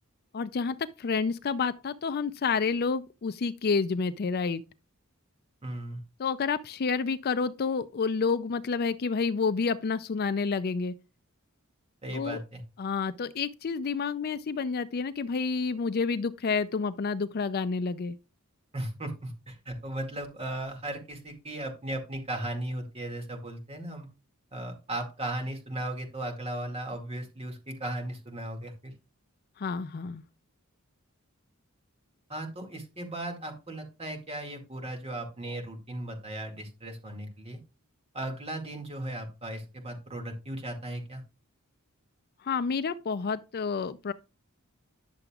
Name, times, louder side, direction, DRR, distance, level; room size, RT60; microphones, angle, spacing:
voice 1, 0.3-4.6 6.2-10.9 12.1-12.4 12.8-18.2 29.6-30.2 42.4-44.1, left 5 dB, 45° left, 0.4 m, -29 dB
voice 2, 5.6-6.0 12.0-12.6 18.7-24.1 24.5-28.9 32.3-37.6 38.1-41.2, right 1 dB, 30° right, 2.1 m, -36 dB
10.5 x 6.8 x 2.4 m
head